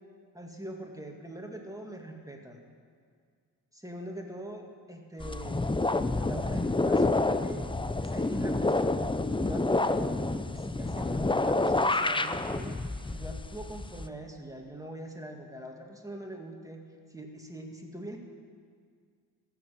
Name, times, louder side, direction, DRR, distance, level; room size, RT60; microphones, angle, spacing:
voice 1, 0.3-2.6 3.7-5.7 6.1-7.7 8.0-8.9 9.3-10.2 10.5-12.8 13.1-16.8 17.1-18.2, right 1 dB, 5° right, 1 dB, 2.3 m, -43 dB
sound 1, 5.2-14.1, left 2 dB, 10° left, 0.6 m, -28 dB
13.5 x 7.2 x 8.6 m, 2.1 s
supercardioid pair, 40°, 46 cm